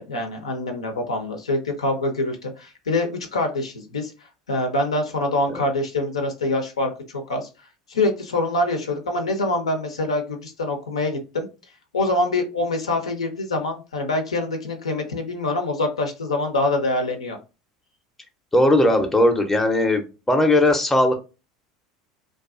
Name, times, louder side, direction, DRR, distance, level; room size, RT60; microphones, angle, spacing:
voice 1, 0.0-4.1 4.5-7.5 7.9-11.5 11.9-17.4, left 2 dB, 80° left, 4 dB, 0.5 m, -25 dB
voice 2, 18.5-21.2, left 1 dB, 10° left, 4 dB, 0.5 m, -18 dB
2.4 x 2.3 x 2.3 m, 0.30 s
figure-of-eight pair, 75°, 3 cm